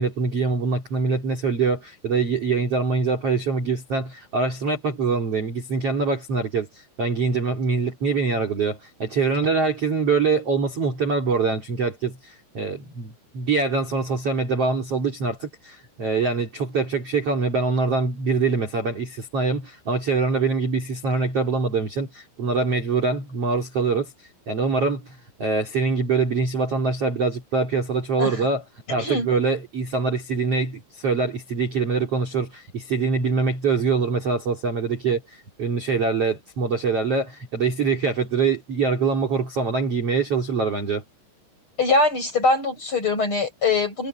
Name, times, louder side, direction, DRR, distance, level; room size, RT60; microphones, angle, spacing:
voice 1, 0.0-24.1 24.5-28.6 28.9-41.0, right 4 dB, 35° right, 3.2 m, -24 dB
voice 2, 41.8-44.1, left 3 dB, 25° left, 8.3 m, -22 dB
omnidirectional pair, 5.7 m